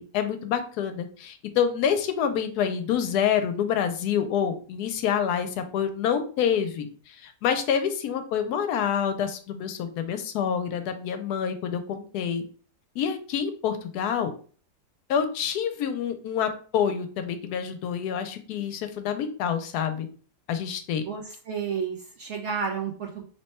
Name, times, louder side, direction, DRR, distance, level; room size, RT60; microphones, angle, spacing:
voice 1, 0.0-12.4 13.0-14.3 15.1-20.1 20.5-21.0, left 8 dB, 80° left, 8 dB, 1.1 m, -27 dB
voice 2, 21.1-23.2, right 6 dB, 65° right, 2 dB, 0.7 m, -31 dB
3.1 x 2.2 x 4.1 m, 0.42 s
omnidirectional pair, 1.7 m